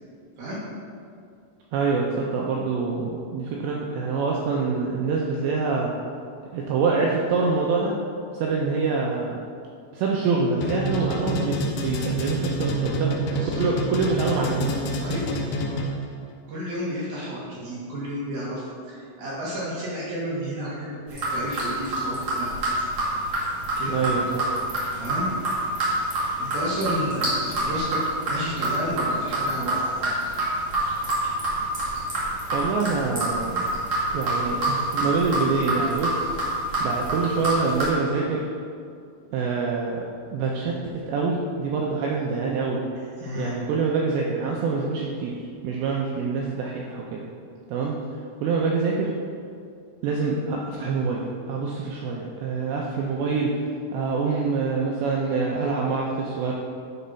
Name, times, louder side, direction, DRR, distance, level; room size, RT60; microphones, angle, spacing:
voice 1, 1.7-5.9 6.5-8.0 8.3-9.4 9.9-13.2 13.6-14.8 23.9-24.6 32.5-33.7 34.1-36.3 36.8-38.5 39.3-40.1 40.3-42.9 43.4-45.4 45.6-47.3 47.7-48.0 48.4-49.1 50.0-53.6 53.9-56.5, right 4 dB, 80° right, -2 dB, 2.5 m, -25 dB
sound 1, 10.6-16.1, equal, 80° left, 2.4 m, -27 dB
voice 2, 13.3-13.7 15.0-15.4 16.5-22.5 23.7-24.0 24.9-25.3 26.1-28.0 28.3-30.3 43.2-43.5, equal, 65° right, -7 dB, 2.6 m, -32 dB
sound 2, 21.1-37.8, right 1 dB, 45° right, 1.7 m, -26 dB
10.0 x 4.2 x 5.6 m, 2.3 s
omnidirectional pair, 5.7 m